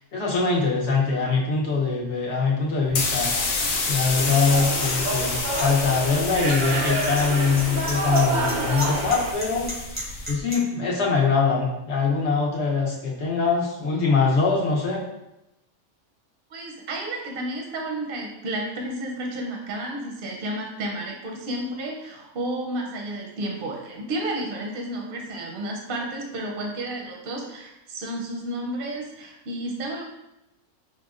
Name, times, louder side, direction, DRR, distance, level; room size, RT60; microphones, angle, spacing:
voice 1, 0.0-3.3 3.9-9.7 10.3-15.0, left 4 dB, 60° left, -3 dB, 1.0 m, -23 dB
sound 1, 2.9-10.3, left 3 dB, 85° left, 1.0 m, -29 dB
sound 2, 4.1-9.3, right 2 dB, 90° right, 0.4 m, -28 dB
sound 3, 4.8-10.5, equal, 10° right, 0.7 m, -36 dB
voice 2, 16.5-30.0, right 1 dB, 55° right, 0 dB, 0.7 m, -31 dB
5.5 x 2.1 x 2.4 m, 0.90 s
omnidirectional pair, 1.4 m